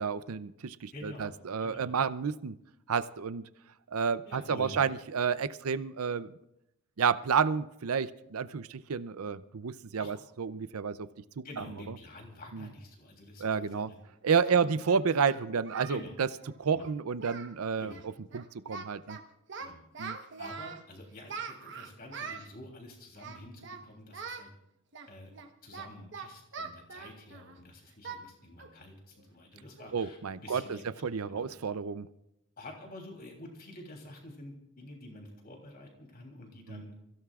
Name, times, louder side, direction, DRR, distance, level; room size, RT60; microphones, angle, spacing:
voice 1, 0.0-2.5 2.9-3.4 3.9-6.4 7.0-11.1 11.4-11.6 12.5-12.7 13.4-13.9 14.2-16.3 16.6-17.9 18.3-19.2 20.0-20.2 29.9-32.1 36.7-36.8, right 6 dB, 80° right, 15 dB, 0.6 m, -30 dB
voice 2, 0.9-1.9 4.2-5.0 10.0-10.1 11.4-14.0 14.4-14.7 15.9-16.2 16.7-16.9 17.8-18.0 19.6-19.8 20.4-24.5 25.1-25.3 25.6-31.5 32.6-36.9, left 1 dB, 45° left, 1 dB, 3.2 m, -48 dB
Singing, 14.0-14.1 14.8-16.0 16.3-16.5 16.8-16.9 17.2-17.6 17.8-18.0 18.3-19.2 19.5-20.8 21.3-22.5 23.2-23.8 24.1-24.5 24.9-27.6 28.0-28.2 28.6-28.8 29.2-29.3 29.8-30.0, right 5 dB, 55° right, 1.2 m, -43 dB
28.5 x 16.0 x 2.5 m, 0.84 s
head